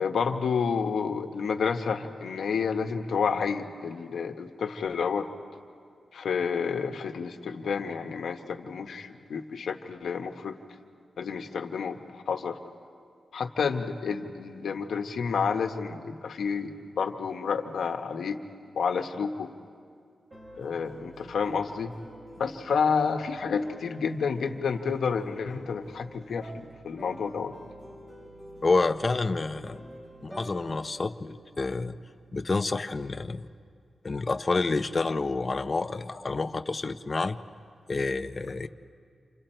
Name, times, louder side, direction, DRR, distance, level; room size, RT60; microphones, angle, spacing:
voice 1, 0.0-5.3 6.1-10.5 11.2-12.6 13.3-18.4 18.7-19.5 20.5-21.9 22.4-27.5, left 6 dB, 90° left, 5 dB, 1.2 m, -30 dB
sound 1, 20.3-32.4, equal, 30° right, 4.5 m, -48 dB
voice 2, 28.6-29.8 30.2-32.0 32.3-33.5 34.0-37.4 37.9-38.7, left 3 dB, 30° left, 8 dB, 0.6 m, -28 dB
29.0 x 27.0 x 4.5 m, 2.2 s
wide cardioid pair, 135°, 0 cm